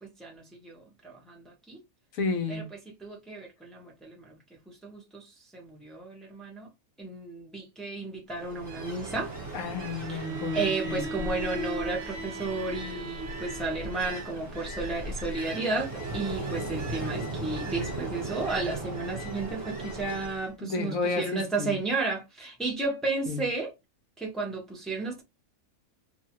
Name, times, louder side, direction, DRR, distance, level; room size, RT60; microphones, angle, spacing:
voice 1, 0.0-1.8 2.5-2.6 3.0-4.3 4.7-6.7 7.0-9.3 9.9-10.2 10.5-23.7 24.2-25.2, right 3 dB, ahead, 0.6 m, -33 dB
voice 2, 2.1-2.7 9.5-11.3 20.6-21.8 23.3-23.4, left 4 dB, 75° left, 1.1 m, -32 dB
Ocean, 8.3-20.5, right 2 dB, 35° right, 1.1 m, -37 dB
Bowed string instrument, 10.0-14.3, right 3 dB, 55° right, 0.7 m, -38 dB
2.7 x 2.3 x 2.9 m
omnidirectional pair, 1.5 m